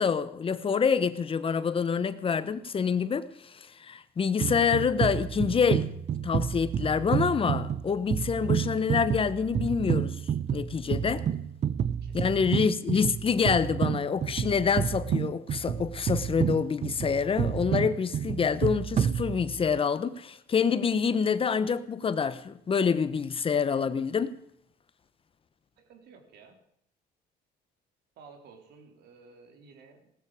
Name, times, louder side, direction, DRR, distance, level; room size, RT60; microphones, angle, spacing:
voice 1, 0.0-5.9 6.2-10.2 10.5-11.2 12.1-24.3, left 6 dB, 35° left, 0.9 m, -27 dB
sound 1, 4.4-19.8, right 8 dB, 45° right, 0.7 m, -30 dB
voice 2, 12.0-12.6 25.8-26.6 28.2-30.1, right 4 dB, 75° right, 3.5 m, -54 dB
17.5 x 13.5 x 4.9 m
cardioid pair, 110°, 17 cm